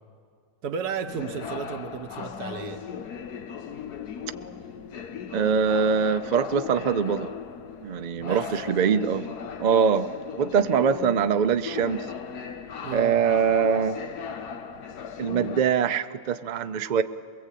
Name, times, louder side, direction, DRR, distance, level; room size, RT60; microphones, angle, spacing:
voice 1, 0.6-2.8 8.2-8.5 12.8-13.2, right 6 dB, 85° right, 7 dB, 1.6 m, -33 dB
sound 1, 1.1-15.6, left 7 dB, 90° left, 1.5 m, -37 dB
voice 2, 5.3-7.3 7.8-9.3 9.6-10.1 10.4-12.1 12.9-14.0 15.2-17.0, right 6 dB, 50° right, 10 dB, 0.5 m, -23 dB
22.5 x 22.0 x 8.4 m, 2.2 s
omnidirectional pair, 1.6 m